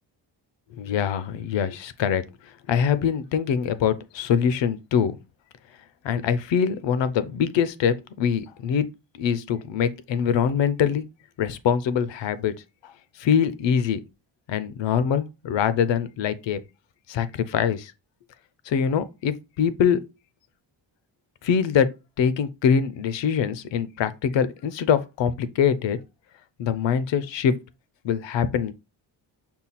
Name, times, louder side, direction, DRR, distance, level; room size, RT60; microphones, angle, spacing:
voice 1, 0.7-2.2 2.7-5.2 6.0-8.9 9.2-11.0 11.4-12.5 12.8-12.9 13.2-14.0 14.5-16.6 17.1-17.9 18.7-20.0 21.4-21.9 22.2-26.0 26.6-27.5 28.0-28.7, left 7 dB, 70° left, 0.6 m, -23 dB
5.6 x 2.3 x 4.1 m
wide cardioid pair, 160°, 45 cm